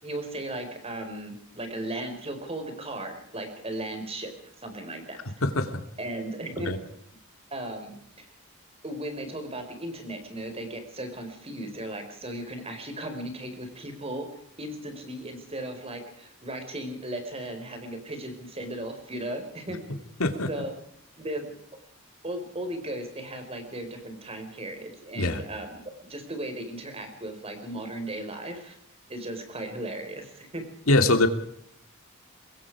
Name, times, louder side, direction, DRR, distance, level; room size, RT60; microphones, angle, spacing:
voice 1, 0.0-4.3 4.6-5.2 6.0-6.7 7.5-8.3 8.8-14.3 14.6-20.0 20.5-20.7 21.2-21.4 22.2-28.8 29.1-30.6, right 1 dB, 30° right, 6 dB, 4.9 m, -36 dB
voice 2, 5.4-5.8 6.6-6.8 20.2-20.5 25.1-25.4 30.9-31.3, left 2 dB, 85° left, 7 dB, 2.8 m, -22 dB
24.5 x 21.5 x 4.9 m, 0.69 s
head